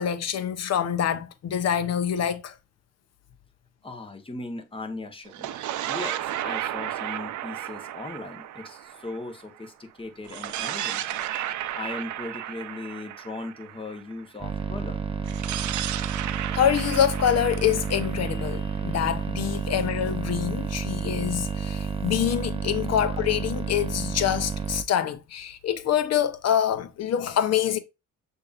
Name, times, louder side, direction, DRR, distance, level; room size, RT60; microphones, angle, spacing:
voice 1, 0.0-2.5 16.5-27.8, left 9 dB, 55° left, 0.7 m, -25 dB
voice 2, 3.8-11.2 11.7-15.0 22.8-22.9, left 2 dB, 15° left, 1.1 m, -38 dB
sound 1, 5.3-9.7 10.2-14.2 15.2-19.0, right 12 dB, 75° right, 0.5 m, -34 dB
sound 2, 14.4-24.8, right 5 dB, 20° right, 0.6 m, -30 dB
6.5 x 2.7 x 2.4 m
cardioid pair, 90°, 30 cm